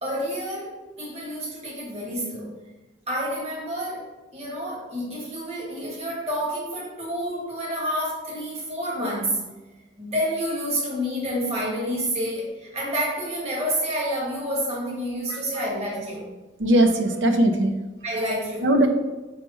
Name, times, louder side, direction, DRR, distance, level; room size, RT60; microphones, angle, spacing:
voice 1, 0.0-2.6 3.1-9.5 10.0-16.3 18.0-18.7, equal, 35° right, -5 dB, 1.6 m, -29 dB
voice 2, 15.3-15.6 16.6-17.7 18.6-18.9, right 1 dB, 85° right, 6 dB, 0.7 m, -20 dB
5.7 x 3.1 x 5.5 m, 1.2 s
head